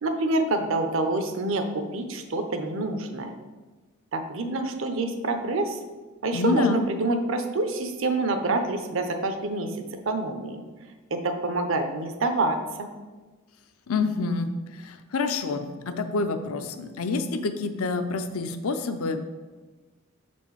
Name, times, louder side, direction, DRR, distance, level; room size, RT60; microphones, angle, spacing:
voice 1, 0.0-3.3 4.1-5.8 6.2-9.7 10.1-10.6 11.1-12.9, right 2 dB, 65° right, 6 dB, 0.7 m, -27 dB
voice 2, 6.3-6.8 13.9-19.2, left 4 dB, 80° left, 8 dB, 0.5 m, -27 dB
6.4 x 4.3 x 4.7 m, 1.3 s
head